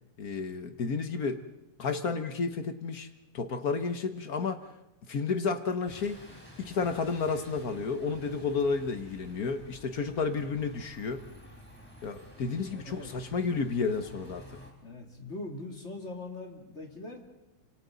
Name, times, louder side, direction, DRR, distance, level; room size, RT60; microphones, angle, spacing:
voice 1, 0.2-1.4 1.8-3.1 3.3-4.6 5.1-6.2 6.6-11.2 12.0-14.6, left 4 dB, 50° left, 8 dB, 1.4 m, -31 dB
Bus, 5.9-14.7, equal, 5° left, 4.0 m, -51 dB
voice 2, 12.7-13.1 14.8-17.2, left 2 dB, 30° left, 0 dB, 3.3 m, -41 dB
28.0 x 26.0 x 4.0 m, 0.91 s
omnidirectional pair, 2.4 m